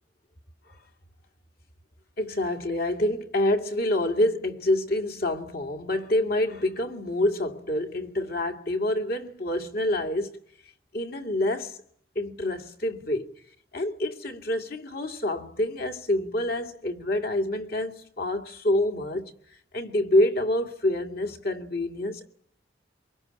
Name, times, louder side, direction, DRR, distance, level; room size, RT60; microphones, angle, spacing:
voice 1, 2.2-10.4 10.9-11.8 12.2-13.3 13.7-19.3 19.7-22.3, left 1 dB, 55° left, 2.4 m, -27 dB
24.5 x 22.5 x 9.7 m
head